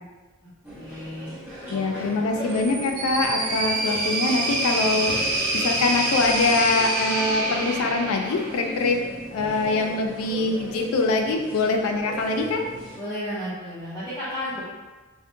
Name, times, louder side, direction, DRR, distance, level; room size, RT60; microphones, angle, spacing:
voice 1, 0.4-1.3 1.6-1.7 2.1-2.2 3.8-3.9 4.4-4.5 12.9-14.6, equal, 10° left, -13 dB, 0.5 m, -34 dB
sound 1, 0.6-13.0, equal, 5° right, 0.9 m, -38 dB
voice 2, 1.7-5.1 5.5-9.0 9.3-12.6, left 3 dB, 90° left, 3 dB, 0.3 m, -24 dB
sound 2, 2.5-8.7, right 1 dB, 45° right, 0.5 m, -27 dB
2.6 x 2.1 x 2.5 m, 1.2 s
head